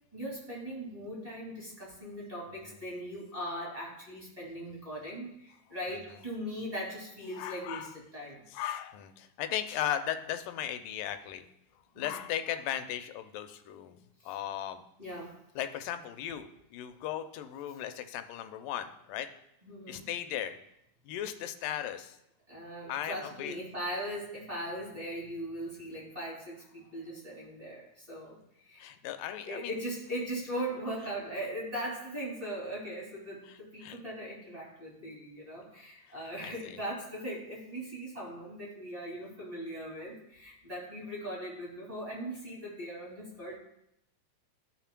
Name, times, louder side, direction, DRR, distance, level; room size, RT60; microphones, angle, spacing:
voice 1, 0.1-8.4 11.9-12.1 14.2-14.3 15.0-15.4 19.6-20.1 22.5-28.4 28.6-28.9 29.4-43.6, equal, 15° right, -4 dB, 1.7 m, -39 dB
voice 2, 7.4-7.9 8.5-11.5 12.0-14.0 14.3-14.8 15.6-19.3 19.9-20.6 21.1-22.2 22.9-23.6 28.8-29.7 33.8-34.0 36.4-36.7, left 11 dB, 85° left, 8 dB, 2.2 m, -36 dB
14.0 x 5.8 x 2.2 m, 0.78 s
omnidirectional pair, 3.8 m